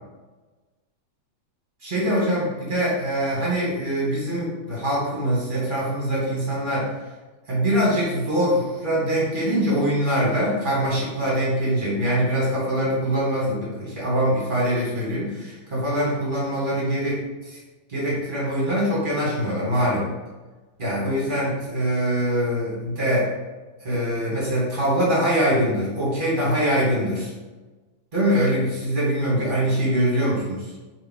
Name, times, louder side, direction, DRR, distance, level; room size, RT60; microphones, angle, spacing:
voice 1, 1.8-6.9 7.5-17.6 17.9-20.0 20.8-23.3 23.8-27.3 28.1-30.7, equal, 35° right, -7 dB, 0.8 m, -23 dB
7.7 x 5.0 x 3.9 m, 1.2 s
omnidirectional pair, 5.4 m